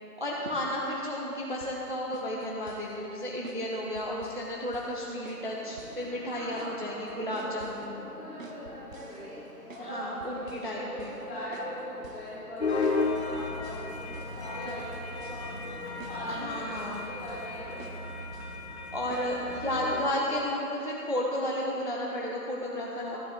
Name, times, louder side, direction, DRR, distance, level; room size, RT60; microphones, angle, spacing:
voice 1, 0.2-8.0 9.8-11.2 16.3-17.0 18.9-23.2, left 1 dB, 35° right, -3 dB, 0.6 m, -33 dB
sound 1, 1.6-1.8 2.1-2.9 3.4-3.6 4.0-4.5 4.7-5.0 5.3-5.5 5.8-6.0 6.3-6.8 7.1-7.9 8.4-9.9 10.2-10.7 11.0-11.2 11.5-11.7 12.0-12.3 12.8-13.0 13.3-13.9 14.1-14.4 14.7-15.8 16.0-16.2 16.5-17.0 17.3-17.5 17.8-18.0 18.3-18.6 19.1-19.3, right 3 dB, 55° right, 1.0 m, -49 dB
sound 2, 5.1-19.8, left 1 dB, 25° left, 1.6 m, -51 dB
voice 2, 6.1-9.4 9.7-18.0 19.0-19.3 20.0-20.3 23.1-23.2, equal, 5° left, -17 dB, 1.5 m, -41 dB
sound 3, 12.6-20.0, left 3 dB, 45° left, 1.0 m, -34 dB
12.0 x 7.5 x 4.3 m, 2.9 s
figure-of-eight pair, 175°, 47 cm